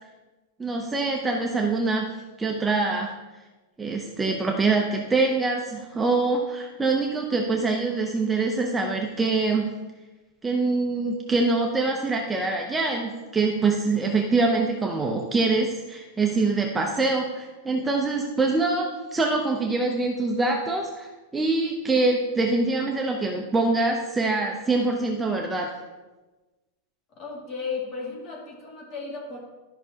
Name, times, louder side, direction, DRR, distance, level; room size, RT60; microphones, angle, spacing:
voice 1, 0.6-2.1 2.4-3.1 3.8-9.7 10.4-25.7, right 3 dB, 10° right, 0 dB, 0.6 m, -24 dB
voice 2, 27.1-29.4, left 4 dB, 30° left, -2 dB, 2.3 m, -34 dB
12.5 x 5.8 x 2.8 m, 1.2 s
supercardioid pair, 155°, 0 cm